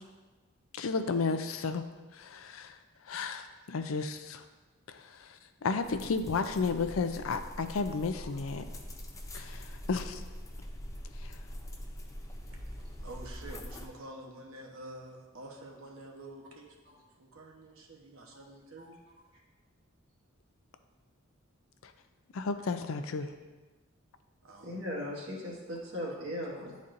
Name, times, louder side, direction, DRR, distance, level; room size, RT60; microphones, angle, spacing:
voice 1, 0.7-1.8 2.1-2.8 3.1-4.4 4.9-8.6 9.3-10.2 11.2-11.4 21.8-21.9 22.3-23.3, left 4 dB, 80° left, 8 dB, 0.5 m, -33 dB
sound 1, 5.8-13.9, equal, 15° left, 0.5 m, -43 dB
voice 2, 12.5-19.0 24.4-24.8, right 1 dB, 85° right, 0 dB, 1.0 m, -48 dB
voice 3, 24.6-26.8, left 1 dB, 65° right, -4 dB, 1.7 m, -38 dB
10.5 x 4.1 x 2.6 m, 1.3 s
head